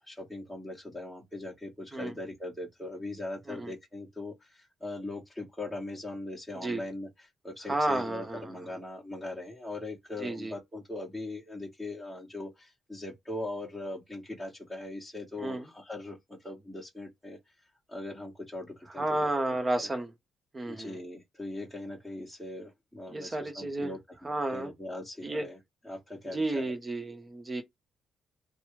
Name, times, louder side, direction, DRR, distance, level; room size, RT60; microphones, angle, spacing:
voice 1, 0.0-17.4 17.9-19.9 20.6-24.0 24.5-26.7, left 2 dB, 5° right, 1.4 m, -40 dB
voice 2, 7.7-8.4 10.2-10.6 15.4-15.6 19.0-20.1 20.5-21.0 23.1-23.9 24.2-24.7 25.2-25.5 26.3-27.6, right 2 dB, 25° right, 0.9 m, -31 dB
2.9 x 2.3 x 3.1 m
cardioid pair, 90°, 0 cm